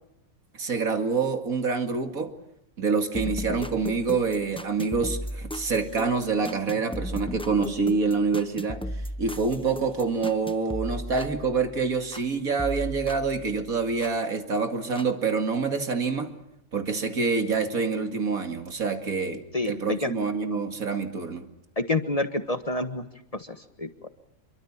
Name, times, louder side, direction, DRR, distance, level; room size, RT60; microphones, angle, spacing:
voice 1, 0.6-2.3 2.8-8.8 9.2-16.3 16.7-21.5, right 4 dB, 80° right, 6 dB, 2.7 m, -26 dB
sound 1, 3.1-12.3 12.6-14.2 15.0-15.1, equal, 5° left, 0.8 m, -36 dB
voice 2, 19.5-20.1 21.8-23.0 23.5-24.1, left 2 dB, 25° left, 9 dB, 1.3 m, -28 dB
26.5 x 24.0 x 7.3 m, 0.78 s
omnidirectional pair, 1.5 m